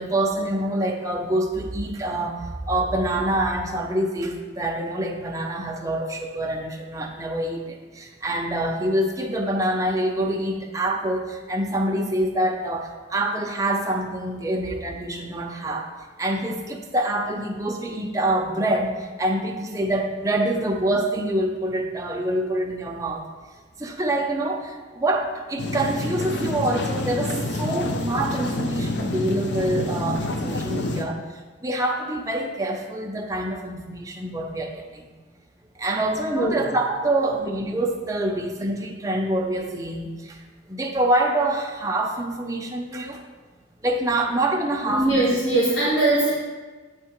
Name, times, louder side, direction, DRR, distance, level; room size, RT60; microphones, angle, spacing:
voice 1, 0.0-2.4 2.7-15.9 16.2-23.2 23.8-31.2 31.6-35.1 35.8-40.4 40.7-43.2 43.8-45.2, right 1 dB, 15° right, 1 dB, 0.6 m, -26 dB
sound 1, 25.6-31.0, left 2 dB, 60° left, 0.6 m, -27 dB
voice 2, 36.3-36.6 44.9-46.3, right 2 dB, 80° left, -10 dB, 2.0 m, -21 dB
8.7 x 3.6 x 4.4 m, 1.3 s
head